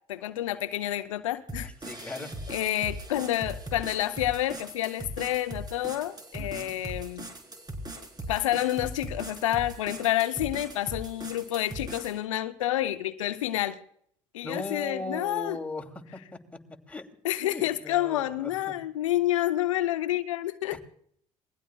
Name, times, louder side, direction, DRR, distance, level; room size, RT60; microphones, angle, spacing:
voice 1, 0.1-1.7 2.0-2.1 2.5-7.3 8.0-13.8 14.3-15.6 17.2-20.8, left 13 dB, 80° left, 0.6 m, -29 dB
sound 1, 1.5-12.2, right 1 dB, 25° right, 4.1 m, -40 dB
voice 2, 1.6-2.3 6.4-6.7 14.4-16.2 16.9-17.0 17.5-18.7 20.7-20.8, left 2 dB, 10° left, 2.7 m, -38 dB
27.5 x 21.0 x 2.3 m
hypercardioid pair, 60°, 16 cm